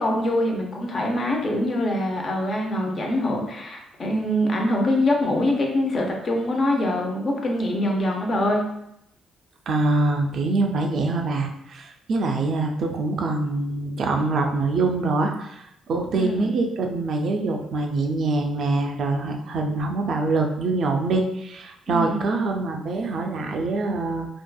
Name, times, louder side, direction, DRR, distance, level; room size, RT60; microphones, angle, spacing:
voice 1, 0.0-8.6 16.1-16.5 21.9-22.3, left 1 dB, 45° left, 0 dB, 0.6 m, -24 dB
voice 2, 9.7-24.3, right 3 dB, 60° right, 2 dB, 0.4 m, -24 dB
2.6 x 2.4 x 2.2 m, 0.81 s
cardioid pair, 90°, 0 cm